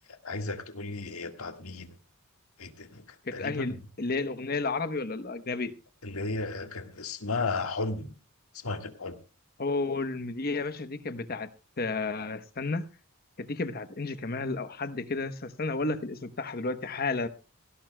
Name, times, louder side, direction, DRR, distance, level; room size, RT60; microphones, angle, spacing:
voice 1, 0.1-1.9 2.6-3.0 3.3-3.8 6.0-8.1 8.5-9.2, left 3 dB, 80° left, 1.7 m, -34 dB
voice 2, 3.3-5.7 9.6-11.5 11.8-12.8 13.4-17.3, left 3 dB, 45° left, 0.9 m, -32 dB
17.0 x 17.0 x 2.2 m
head